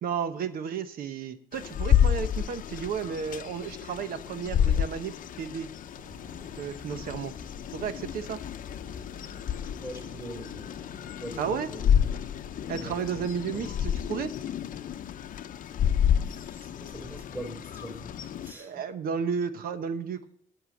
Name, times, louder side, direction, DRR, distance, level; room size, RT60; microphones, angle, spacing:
voice 1, 0.0-5.7 6.6-7.3 7.7-8.4 11.4-11.7 12.7-14.3 18.6-20.3, right 7 dB, 85° right, 11 dB, 1.0 m, -33 dB
sound 1, 1.5-18.5, left 9 dB, 65° left, 0.6 m, -30 dB
Thunder, 5.9-14.8, right 2 dB, 50° right, 2.2 m, -53 dB
voice 2, 9.8-10.7 11.2-11.9 12.8-13.7 16.2-18.1 18.4-18.8, right 1 dB, 10° right, 4 dB, 3.4 m, -42 dB
11.0 x 6.7 x 7.7 m, 0.68 s
wide cardioid pair, 150°, 15 cm